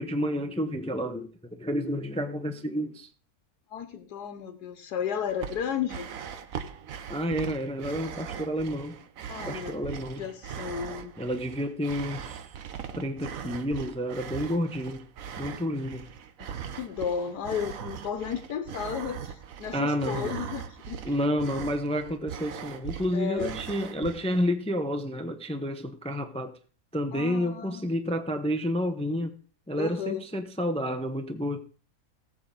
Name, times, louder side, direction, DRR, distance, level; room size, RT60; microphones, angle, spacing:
voice 1, 0.0-3.1 7.1-9.0 9.5-10.2 11.2-12.5 12.9-15.1 15.4-16.1 19.7-20.4 21.0-26.5 26.9-29.3 29.7-31.6, equal, 5° left, 0.6 m, -30 dB
voice 2, 3.7-6.1 9.3-9.7 10.2-11.1 16.4-21.1 23.1-23.5 27.1-28.0 29.8-30.3, left 8 dB, 90° left, 1.5 m, -33 dB
sound 1, 5.3-24.5, right 8 dB, 65° right, 1.2 m, -40 dB
18.5 x 7.8 x 3.9 m
omnidirectional pair, 1.7 m